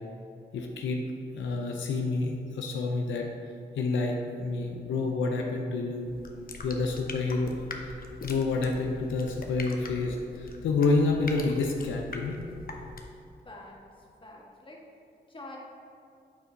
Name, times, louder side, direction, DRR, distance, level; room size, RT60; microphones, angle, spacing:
voice 1, 0.5-1.0 1.3-3.3 3.8-6.1 6.6-7.5 8.2-12.4, left 3 dB, 90° left, 2 dB, 0.6 m, -28 dB
sound 1, 6.0-13.3, left 3 dB, 50° left, 0.8 m, -42 dB
voice 2, 13.4-14.8 15.3-15.6, left 2 dB, 25° left, -2 dB, 1.6 m, -47 dB
8.4 x 4.4 x 3.9 m, 2.5 s
cardioid pair, 55°, 19 cm